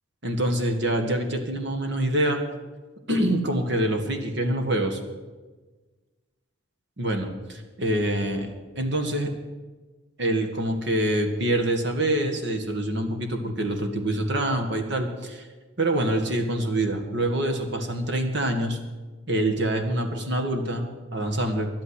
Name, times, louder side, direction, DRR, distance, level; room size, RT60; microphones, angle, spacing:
voice 1, 0.2-2.4 3.1-5.0 7.0-8.5 8.8-9.3 10.2-15.4 15.8-18.8 19.3-21.7, right 1 dB, 55° right, 5 dB, 1.7 m, -25 dB
11.5 x 8.7 x 9.7 m, 1.3 s
head